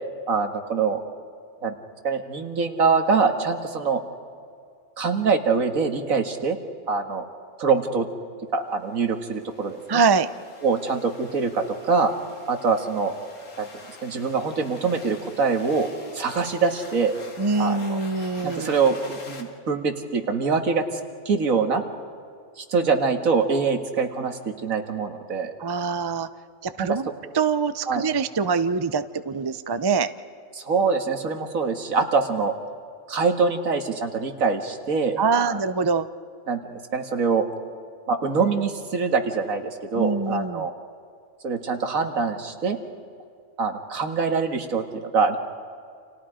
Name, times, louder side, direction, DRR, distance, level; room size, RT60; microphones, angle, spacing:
voice 1, 0.3-1.0 1.6-1.7 2.0-4.0 5.0-6.6 6.9-7.2 7.6-8.1 8.5-10.0 10.6-12.1 12.5-13.1 13.6-13.7 14.0-15.9 16.1-17.2 17.6-18.0 18.4-21.0 21.3-21.8 22.6-25.5 26.8-26.9 27.9-28.0 30.5-32.5 33.1-35.6 36.5-37.5 38.1-40.7 41.4-42.8 43.6-45.4, right 5 dB, 70° right, 5 dB, 2.1 m, -24 dB
sound 1, 9.0-19.4, left 3 dB, 90° left, 2.7 m, -46 dB
voice 2, 9.9-10.3 17.4-18.7 25.6-26.3 26.6-27.1 27.3-30.1 35.2-36.1 40.0-40.6, right 5 dB, 30° right, 12 dB, 0.4 m, -24 dB
30.0 x 28.0 x 5.1 m, 2.2 s
omnidirectional pair, 1.5 m